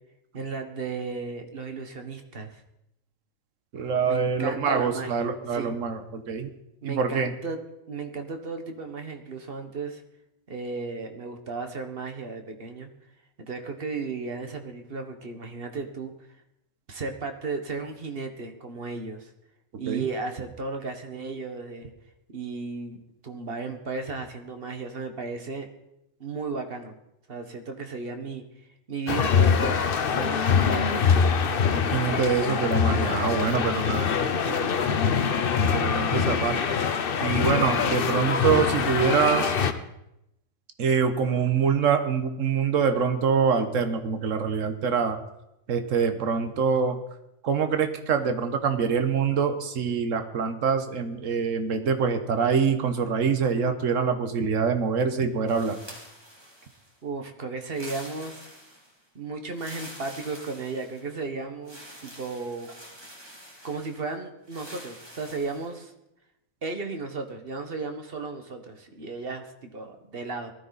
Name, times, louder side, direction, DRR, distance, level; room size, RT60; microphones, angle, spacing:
voice 1, 0.3-2.6 4.0-5.7 6.8-7.6 7.9-10.0 10.5-12.9 13.4-16.1 16.9-19.3 19.8-21.9 22.3-23.0 23.2-25.7 26.2-27.0 27.3-28.4 28.9-31.1 57.0-58.5 59.1-62.7 63.6-65.9 66.6-70.5, right 4 dB, 45° right, 6 dB, 1.6 m, -35 dB
voice 2, 3.7-6.5 6.8-7.3 19.9-20.1 31.8-35.3 35.6-36.8 37.2-39.5 40.8-45.2 45.7-47.0 47.4-55.8, right 6 dB, 65° right, 8 dB, 1.5 m, -25 dB
sound 1, 29.1-39.7, left 6 dB, 50° left, 0.9 m, -24 dB
sound 2, 55.5-57.0 57.6-59.0 59.5-61.2 61.6-64.0 64.5-65.7, equal, 20° right, 2.7 m, -46 dB
18.5 x 13.0 x 4.1 m, 0.86 s
omnidirectional pair, 1.4 m